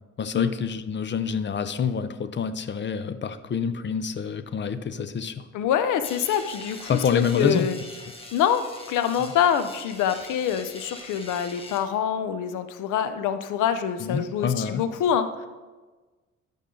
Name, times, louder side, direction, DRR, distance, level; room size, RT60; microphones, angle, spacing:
voice 1, 0.2-5.5 6.9-7.7 9.2-9.3 14.0-14.8, left 6 dB, 40° left, 12 dB, 0.6 m, -27 dB
voice 2, 5.5-7.8 8.3-15.5, left 8 dB, 85° left, 11 dB, 0.7 m, -25 dB
sound 1, 6.0-11.8, left 2 dB, 20° left, 1.5 m, -43 dB
13.0 x 5.5 x 3.8 m, 1.3 s
cardioid pair, 90°, 30 cm